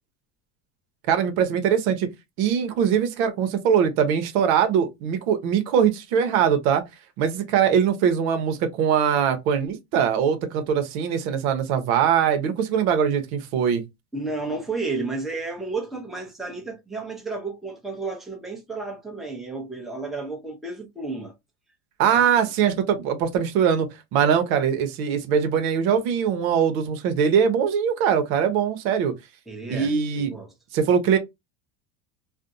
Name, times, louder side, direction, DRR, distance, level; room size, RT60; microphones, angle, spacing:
voice 1, 1.1-2.1 2.4-6.8 7.2-13.8 22.0-29.1 29.7-30.3 30.7-31.2, right 7 dB, 75° right, 0.8 m, -22 dB
voice 2, 14.1-21.3 22.1-22.2 29.5-30.5, right 3 dB, ahead, 0.7 m, -32 dB
2.5 x 2.1 x 2.6 m
supercardioid pair, 120°, 43 cm